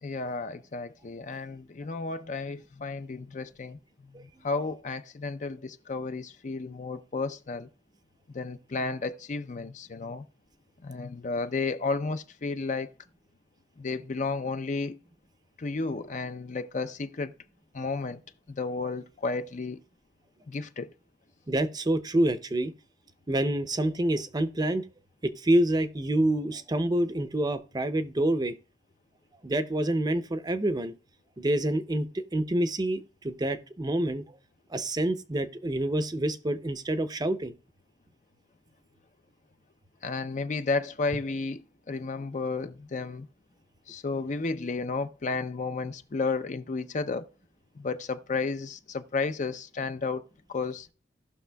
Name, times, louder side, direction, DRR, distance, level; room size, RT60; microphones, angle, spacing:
voice 1, 0.0-3.8 4.1-7.7 8.3-10.2 10.8-12.9 13.8-15.0 15.6-17.3 17.7-18.2 18.5-19.8 20.5-20.9 40.0-43.3 43.9-47.3 47.8-50.2 50.5-50.9, left 4 dB, 45° left, 0.5 m, -32 dB
voice 2, 21.5-22.7 23.3-24.8 25.2-28.5 29.4-30.9 31.4-34.2 34.7-37.5, right 1 dB, 25° right, 0.6 m, -27 dB
17.5 x 6.0 x 2.3 m
head